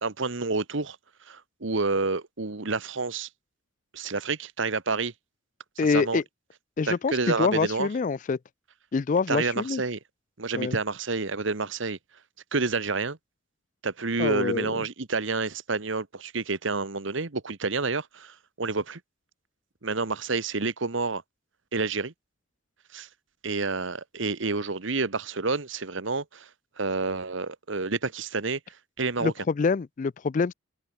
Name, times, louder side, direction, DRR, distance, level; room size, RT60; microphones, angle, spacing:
voice 1, 0.0-1.0 1.3-3.3 3.9-5.1 5.9-6.2 6.9-7.9 9.3-10.0 10.4-12.0 12.5-13.2 13.8-19.0 19.8-21.2 21.7-22.1 22.9-23.1 23.4-26.5 26.8-28.6 29.0-29.3, right 4 dB, 70° right, 1.3 m, -29 dB
voice 2, 5.8-6.2 6.8-8.4 8.9-9.8 10.5-10.8 14.2-14.7 29.2-30.5, left 4 dB, 40° left, 0.3 m, -26 dB
head